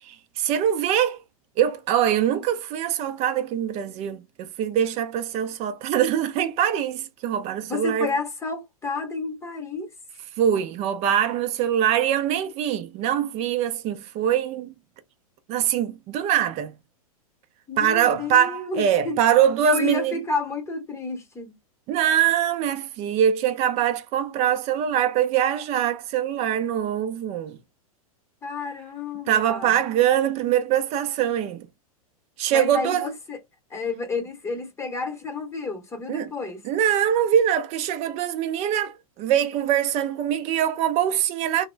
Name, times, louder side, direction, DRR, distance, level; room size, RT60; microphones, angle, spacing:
voice 1, 0.0-1.2 1.6-8.1 10.4-14.8 15.5-16.7 17.8-20.2 21.9-27.6 29.3-31.7 32.4-33.1 36.1-36.3 36.6-41.7, right 9 dB, 35° right, 0.5 m, -23 dB
voice 2, 7.7-9.9 17.7-19.2 19.6-21.5 28.4-29.8 32.5-33.4 33.7-36.6, left 3 dB, 15° left, 0.9 m, -30 dB
2.2 x 2.1 x 3.1 m
hypercardioid pair, 110°, 19 cm